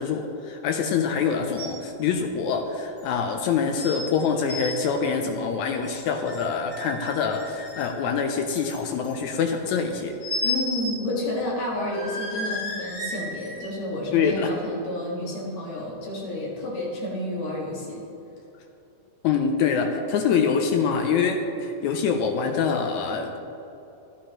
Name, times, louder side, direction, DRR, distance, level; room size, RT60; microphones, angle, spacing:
voice 1, 0.0-10.2 14.1-14.5 19.2-23.4, left 6 dB, 80° left, 4 dB, 1.8 m, -25 dB
sound 1, 1.6-1.8 2.2-2.3 3.0-3.1 3.8-4.0 4.3-4.7 5.9-6.4 6.7-8.0 8.5-9.1 10.2-11.0 11.3-11.4 11.9-13.7 14.2-14.3, left 2 dB, 45° left, 3.4 m, -32 dB
voice 2, 10.4-18.0, left 1 dB, 60° left, -4 dB, 2.9 m, -30 dB
11.5 x 11.5 x 2.9 m, 2.9 s
omnidirectional pair, 3.8 m